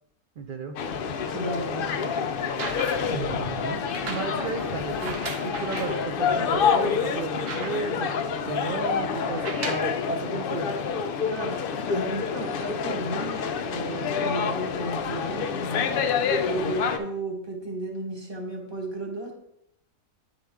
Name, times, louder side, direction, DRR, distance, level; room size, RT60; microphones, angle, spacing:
voice 1, 0.4-0.8 3.0-8.1 8.5-10.7, right 4 dB, 65° right, 5 dB, 0.5 m, -34 dB
sound 1, 0.8-17.0, left 6 dB, 85° left, 0.4 m, -28 dB
voice 2, 1.3-2.1 11.3-16.0 16.5-19.3, right 2 dB, 20° right, 0 dB, 1.2 m, -33 dB
sound 2, 2.4-3.2 3.9-6.0 6.6-6.7 7.0-8.1 9.3-10.0 10.9-11.0, right 4 dB, 50° right, 1.0 m, -37 dB
10.0 x 3.7 x 3.5 m, 0.78 s
omnidirectional pair, 1.5 m